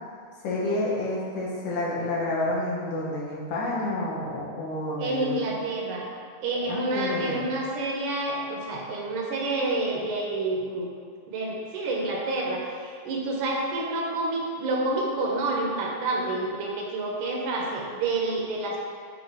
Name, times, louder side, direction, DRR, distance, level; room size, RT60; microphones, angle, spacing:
voice 1, 0.4-5.5 6.7-7.5, left 2 dB, 70° left, -6 dB, 2.4 m, -29 dB
voice 2, 5.0-6.1 6.4-10.9 11.3-18.8, right 2 dB, 75° right, -2 dB, 2.2 m, -28 dB
7.6 x 2.8 x 4.7 m, 2.3 s
omnidirectional pair, 3.6 m